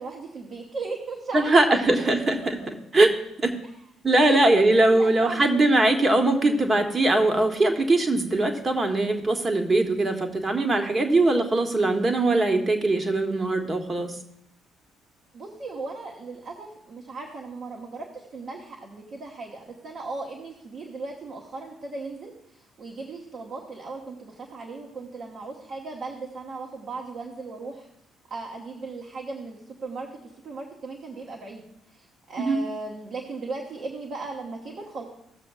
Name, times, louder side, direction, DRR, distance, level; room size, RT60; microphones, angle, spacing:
voice 1, 0.0-1.8 4.3-5.5 15.3-22.3 22.6-27.9 28.3-35.0, right 3 dB, 50° right, -2 dB, 1.3 m, -37 dB
voice 2, 1.3-2.4 2.9-3.1 3.4-3.5 4.0-14.1 32.4-32.6, right 2 dB, 30° right, 5 dB, 1.3 m, -21 dB
16.5 x 7.0 x 2.4 m, 0.76 s
figure-of-eight pair, 45°, 0 cm